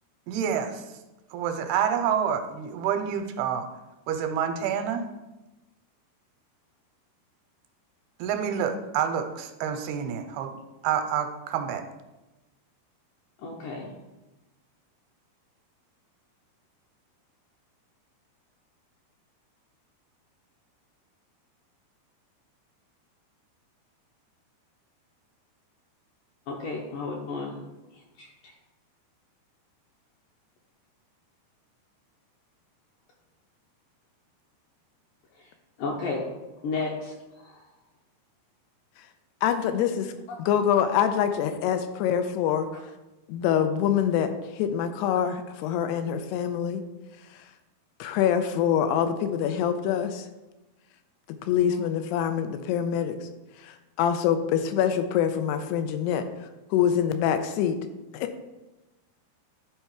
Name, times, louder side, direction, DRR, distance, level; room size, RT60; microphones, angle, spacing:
voice 1, 0.3-0.8 1.3-3.7 4.1-5.1 8.2-10.5 10.8-11.8, right 8 dB, 85° right, 6 dB, 2.6 m, -28 dB
voice 2, 13.4-13.9 26.5-27.6 28.2-28.5 35.4-35.5 35.8-36.3 36.6-37.6, left 3 dB, 75° left, -1 dB, 2.1 m, -33 dB
voice 3, 39.4-40.1 40.4-42.7 43.3-46.8 48.0-50.3 51.4-53.3 53.6-57.8 58.1-58.4, left 9 dB, 90° left, 9 dB, 2.7 m, -25 dB
11.0 x 4.4 x 4.7 m, 1.0 s
omnidirectional pair, 4.7 m